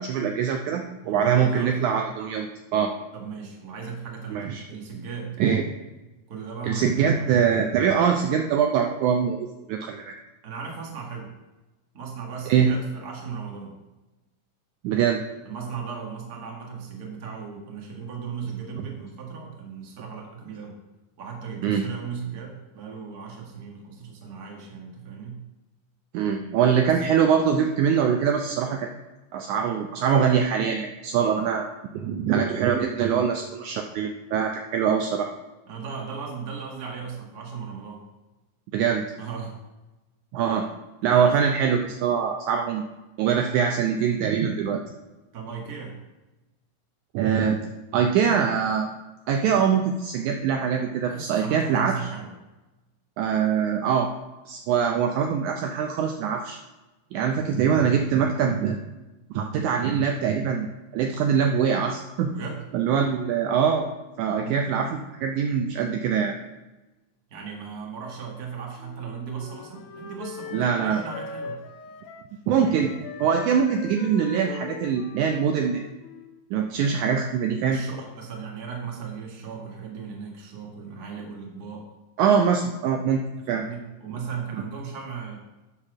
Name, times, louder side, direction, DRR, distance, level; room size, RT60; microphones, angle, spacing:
voice 1, 0.0-2.5 2.7-2.9 4.3-4.6 5.4-5.6 6.6-10.2 12.5-12.7 14.8-15.2 21.6-21.8 26.1-28.9 29.3-31.7 31.9-35.3 38.7-39.1 40.3-40.7 41.0-42.8 43.2-44.8 47.1-47.6 47.9-48.9 49.3-52.0 53.2-54.1 54.5-56.6 57.1-58.8 59.3-60.7 60.9-62.3 62.7-63.9 64.2-66.3 70.5-71.0 72.5-72.9 73.2-75.8 76.5-77.8 82.2-83.2 83.5-83.6, right 7 dB, 80° right, 4 dB, 1.8 m, -23 dB
voice 2, 1.0-1.8 3.1-5.4 6.3-7.2 10.4-11.3 11.9-13.7 15.4-20.8 21.2-25.4 31.2-31.4 35.7-38.0 39.2-39.6 41.0-41.4 45.3-45.9 51.0-52.4 62.3-62.6 64.4-64.6 67.3-71.6 77.7-81.9 83.5-85.4, right 6 dB, 40° right, 0 dB, 1.4 m, -36 dB
Wind instrument woodwind instrument, 68.8-72.3 72.6-76.5, left 5 dB, 75° left, 2.1 m, -41 dB
9.7 x 4.2 x 6.0 m, 1.1 s
omnidirectional pair, 3.8 m